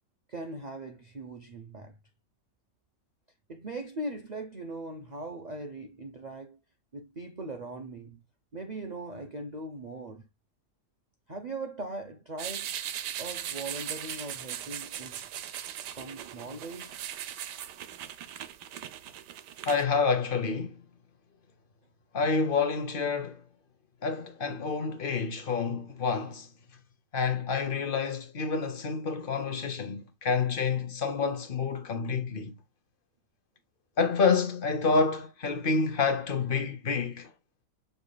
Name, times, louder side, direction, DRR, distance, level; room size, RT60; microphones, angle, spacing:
voice 1, 0.3-2.0 3.5-6.6 6.9-8.2 8.5-10.3 11.3-12.7 13.2-15.3 15.9-17.0, right 2 dB, 65° right, 0.4 m, -40 dB
sound 1, 12.4-19.8, right 10 dB, 90° right, 1.3 m, -39 dB
voice 2, 19.7-20.8 22.1-23.4 24.0-26.5 27.1-32.5 34.0-37.3, left 5 dB, 45° left, 0.7 m, -28 dB
6.8 x 3.5 x 2.2 m
omnidirectional pair, 1.8 m